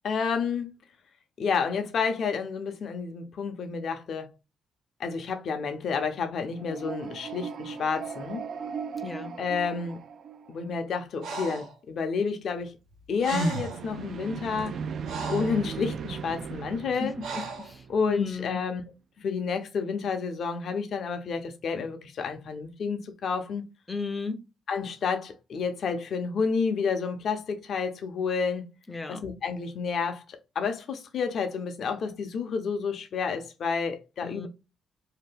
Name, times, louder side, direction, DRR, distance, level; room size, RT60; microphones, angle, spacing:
voice 1, 0.0-0.7 1.4-4.3 5.0-8.4 9.4-10.0 10.5-12.8 13.1-14.8 15.3-17.1 17.9-18.8 19.2-23.7 24.7-28.6 29.1-30.2 30.5-34.5, left 5 dB, 60° left, 0.7 m, -30 dB
sound 1, 6.5-10.8 13.4-18.4, right 6 dB, 60° right, 0.3 m, -38 dB
voice 2, 9.0-9.3 17.0-18.6 23.9-24.4 28.9-29.2 34.2-34.5, left 4 dB, 20° left, 0.5 m, -35 dB
Breathing, 11.2-11.7 12.9-13.0 13.2-13.9 14.6-15.6 17.2-17.7, right 2 dB, 80° right, 0.8 m, -33 dB
2.8 x 2.2 x 3.4 m
cardioid pair, 90°, 0 cm